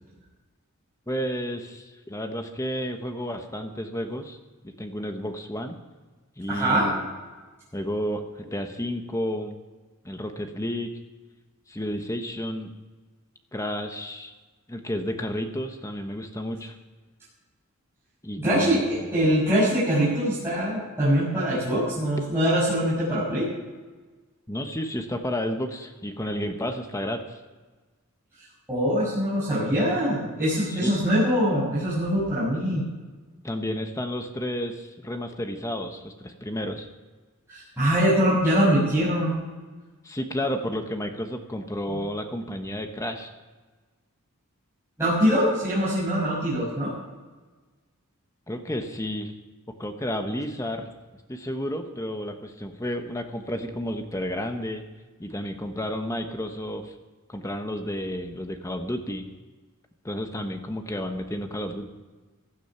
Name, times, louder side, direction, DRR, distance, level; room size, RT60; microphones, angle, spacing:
voice 1, 1.1-4.4 4.6-5.8 6.4-7.1 7.7-9.6 10.0-10.9 11.7-12.7 13.5-14.3 14.7-16.8 18.2-18.8 19.1-19.3 24.5-27.4 30.7-30.9 33.4-36.9 40.0-43.3 48.5-49.3 49.8-50.9 51.3-54.8 55.2-56.9 57.3-59.2 60.0-61.9, equal, 15° left, 6 dB, 1.1 m, -31 dB
voice 2, 6.5-6.9 18.3-23.5 28.7-32.8 37.5-39.4 41.9-42.0 45.0-46.9, equal, 10° right, -11 dB, 6.5 m, -23 dB
16.0 x 12.0 x 5.8 m, 1.3 s
head